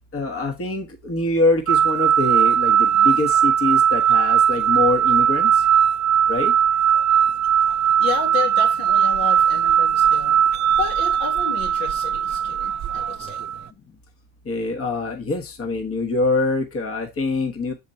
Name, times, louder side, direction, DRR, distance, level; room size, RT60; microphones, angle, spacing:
voice 1, 0.1-5.5 6.3-6.5 14.5-17.7, left 2 dB, 30° left, 4 dB, 1.3 m, -24 dB
sound 1, 1.7-13.6, right 9 dB, 40° right, 0.6 m, -19 dB
voice 2, 8.0-10.4 10.8-13.4, left 7 dB, 80° left, 0 dB, 2.6 m, -31 dB
6.5 x 4.2 x 4.3 m, 0.23 s
hypercardioid pair, 70°, 46 cm